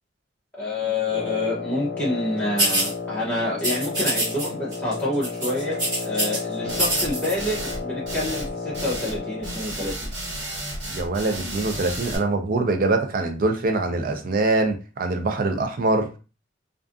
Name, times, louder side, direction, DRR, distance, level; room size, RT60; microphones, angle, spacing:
voice 1, 0.6-10.1, left 2 dB, 10° left, -7 dB, 0.6 m, -28 dB
Wind instrument woodwind instrument, 1.1-9.7, left 4 dB, 60° left, 0.5 m, -32 dB
sound 1, 2.6-2.9 3.6-4.5 4.7-4.9 5.2-6.4 6.7-7.3, right 1 dB, 20° right, 1.1 m, -24 dB
sound 2, 6.7-7.1 7.4-7.8 8.1-8.5 8.7-9.2 9.4-12.2, right 1 dB, 75° right, 1.3 m, -33 dB
voice 2, 10.9-16.1, right 2 dB, 50° right, 5 dB, 0.5 m, -24 dB
2.5 x 2.4 x 2.4 m, 0.33 s
head